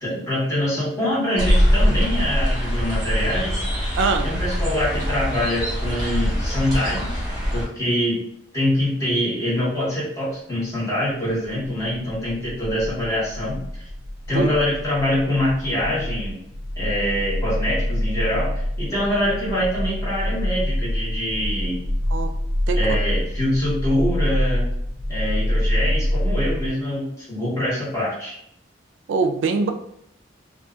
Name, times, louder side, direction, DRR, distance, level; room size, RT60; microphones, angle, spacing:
voice 1, 0.0-3.6 4.2-7.3 7.5-8.2 8.5-13.6 14.3-16.4 16.8-21.8 22.7-24.6 25.1-28.4, left 1 dB, 20° left, -9 dB, 1.2 m, -24 dB
sound 1, 1.4-7.6, equal, 20° right, 1.3 m, -22 dB
voice 2, 4.0-4.3 14.3-14.5 22.1-22.3 22.7-22.8 29.1-29.7, right 4 dB, 90° right, 6 dB, 0.3 m, -22 dB
sound 2, 12.5-26.7, left 1 dB, 70° left, 0.4 m, -26 dB
2.6 x 2.3 x 2.4 m, 0.73 s
head